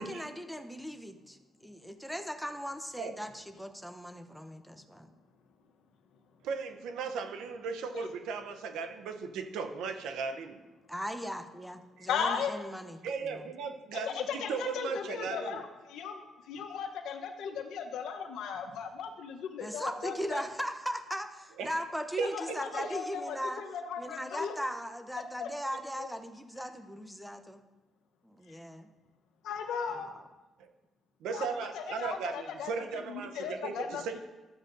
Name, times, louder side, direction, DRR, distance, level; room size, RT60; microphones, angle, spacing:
voice 1, 0.0-5.1 10.9-13.5 19.6-23.6 24.0-27.6 28.2-28.9 29.9-30.2, equal, ahead, 7 dB, 0.8 m, -39 dB
voice 2, 6.4-10.6 12.0-12.1 13.0-15.6 21.6-21.7 22.2-22.9 30.6-30.7 31.2-34.2, right 5 dB, 90° right, 8 dB, 0.7 m, -37 dB
voice 3, 12.1-12.5 14.0-20.4 22.2-24.5 25.4-25.5 26.0-26.1 29.4-30.1 31.3-31.5 31.7-34.2, left 6 dB, 85° left, 6 dB, 0.9 m, -37 dB
13.0 x 7.8 x 2.6 m, 1.2 s
cardioid pair, 90°, 0 cm